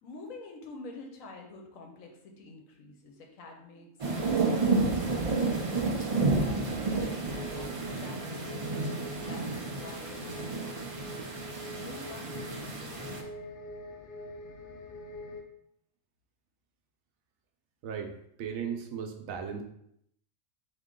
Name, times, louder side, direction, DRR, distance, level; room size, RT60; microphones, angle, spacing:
voice 1, 0.0-3.9 4.1-10.4 11.8-13.4, left 3 dB, 85° left, 2 dB, 1.2 m, -48 dB
sound 1, 4.0-13.2, right 3 dB, 60° right, 0.3 m, -31 dB
sound 2, 5.3-15.4, left 1 dB, 60° left, 0.5 m, -45 dB
voice 2, 17.8-18.1 18.4-19.6, right 7 dB, 90° right, 4 dB, 1.0 m, -36 dB
3.7 x 2.9 x 3.7 m, 0.73 s
omnidirectional pair, 1.4 m